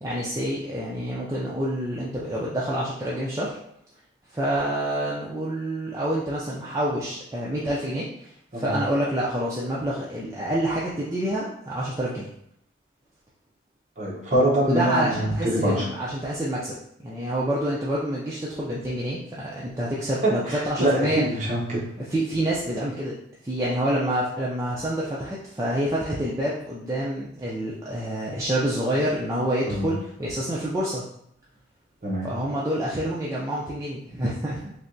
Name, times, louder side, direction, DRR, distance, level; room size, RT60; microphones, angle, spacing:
voice 1, 0.0-3.6 4.3-12.3 14.6-16.8 17.0-21.2 22.0-23.1 23.4-31.1 32.2-34.7, right 1 dB, 15° right, -7 dB, 0.3 m, -27 dB
voice 2, 14.0-15.9 20.2-21.9 29.6-29.9 32.0-32.3, right 1 dB, 35° right, -3 dB, 0.7 m, -24 dB
3.3 x 2.7 x 2.6 m, 0.72 s
head